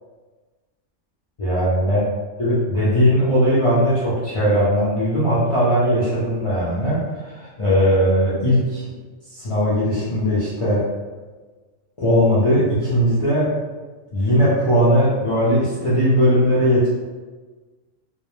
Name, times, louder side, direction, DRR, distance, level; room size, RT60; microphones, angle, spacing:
voice 1, 1.4-2.0 2.4-8.8 9.3-10.8 12.0-13.5 14.1-16.9, equal, 55° left, -9 dB, 0.3 m, -19 dB
2.2 x 2.0 x 3.0 m, 1.3 s
omnidirectional pair, 1.3 m